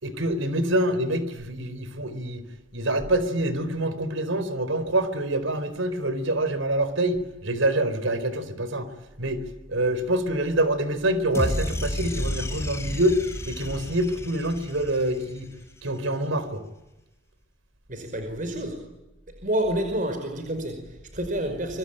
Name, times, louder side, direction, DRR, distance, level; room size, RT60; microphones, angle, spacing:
voice 1, 0.0-2.4 2.7-8.9 9.2-9.4 9.7-13.2 13.4-15.5 15.8-16.6, right 1 dB, 85° right, 13 dB, 4.3 m, -26 dB
sound 1, 11.3-15.7, left 1 dB, 15° left, 3.8 m, -31 dB
voice 2, 17.9-18.8 19.4-21.8, right 1 dB, 40° right, 5 dB, 5.3 m, -29 dB
26.0 x 25.0 x 9.0 m, 0.97 s
head